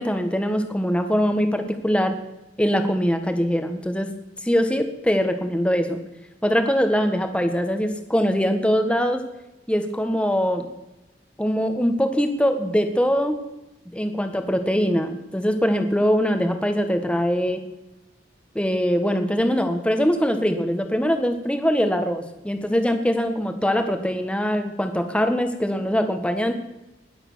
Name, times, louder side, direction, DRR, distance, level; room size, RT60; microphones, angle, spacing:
voice 1, 0.0-2.2 2.6-4.1 4.4-6.0 6.4-9.2 9.7-10.7 11.4-13.4 13.9-17.6 18.5-26.5, equal, 5° left, 7 dB, 1.4 m, -22 dB
20.0 x 8.0 x 6.3 m, 0.99 s
head